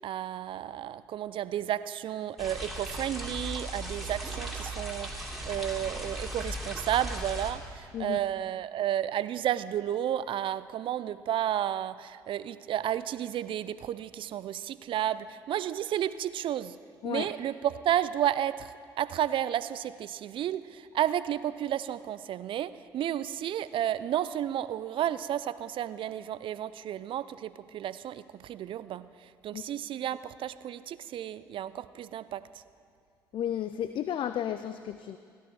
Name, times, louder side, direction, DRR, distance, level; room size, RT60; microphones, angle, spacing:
voice 1, 0.0-16.8 17.0-32.6, right 11 dB, 55° right, 16 dB, 0.5 m, -32 dB
sound 1, 2.4-7.5, right 1 dB, ahead, 3.0 m, -37 dB
voice 2, 33.3-35.2, left 10 dB, 55° left, 12 dB, 0.4 m, -33 dB
16.0 x 12.0 x 4.7 m, 2.3 s
hypercardioid pair, 50°, 10 cm